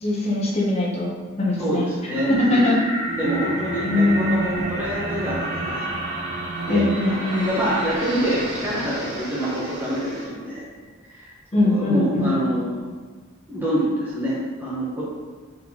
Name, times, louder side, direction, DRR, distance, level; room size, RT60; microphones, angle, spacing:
voice 1, 0.0-1.1 1.4-1.8 2.3-2.8 3.8-4.6 6.7-7.4 11.5-12.3, left 2 dB, 30° left, -3 dB, 0.7 m, -21 dB
voice 2, 1.6-5.9 6.6-10.6 11.0-11.3 11.6-12.8 13.5-15.0, equal, 10° right, -8 dB, 0.8 m, -26 dB
sound 1, 2.1-10.3, right 1 dB, 65° right, 1.1 m, -32 dB
Bowed string instrument, 3.1-7.4, right 2 dB, 35° right, 0.3 m, -33 dB
4.0 x 4.0 x 2.8 m, 1.4 s
head